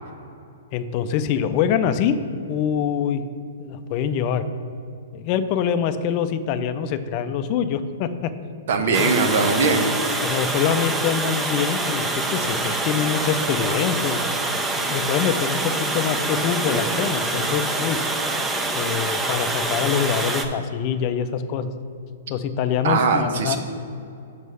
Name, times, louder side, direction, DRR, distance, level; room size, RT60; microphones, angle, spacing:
voice 1, 0.7-2.2 2.5-3.2 3.6-4.4 5.1-8.3 9.0-9.1 10.2-14.3 14.8-18.0 18.7-21.7 22.3-23.6, left 8 dB, 40° left, 10 dB, 0.4 m, -24 dB
voice 2, 8.7-10.2 22.8-23.6, right 4 dB, 65° right, 6 dB, 0.9 m, -21 dB
Water, 8.9-20.4, right 2 dB, 15° right, 0.6 m, -25 dB
6.2 x 5.2 x 5.5 m, 2.5 s
hypercardioid pair, 125°, 0 cm